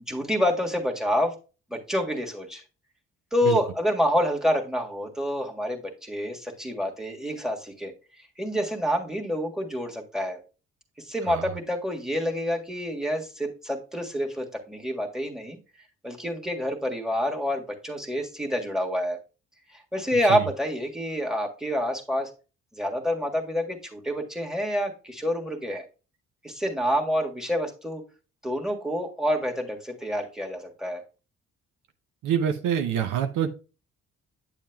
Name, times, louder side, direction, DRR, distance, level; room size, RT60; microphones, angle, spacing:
voice 1, 0.1-1.3 1.7-2.6 3.3-7.9 8.4-10.4 11.0-15.6 16.0-19.2 19.7-22.3 22.7-25.8 26.4-28.0 28.4-31.0, equal, ahead, 3 dB, 1.6 m, -28 dB
voice 2, 32.2-33.5, right 9 dB, 75° right, 7 dB, 0.7 m, -26 dB
8.8 x 7.2 x 2.3 m, 0.33 s
supercardioid pair, 55°, 31 cm